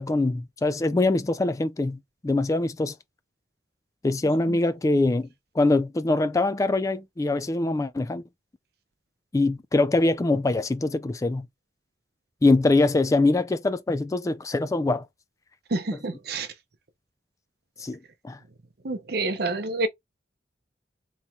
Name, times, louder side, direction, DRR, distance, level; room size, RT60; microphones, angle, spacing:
voice 1, 0.0-2.9 4.0-5.3 5.6-8.2 9.3-11.5 12.4-15.1 17.8-18.0 18.2-18.4, left 2 dB, 20° left, 0.3 m, -23 dB
voice 2, 15.7-16.5 18.8-19.9, right 2 dB, 60° right, 0.7 m, -28 dB
4.2 x 3.0 x 2.3 m
head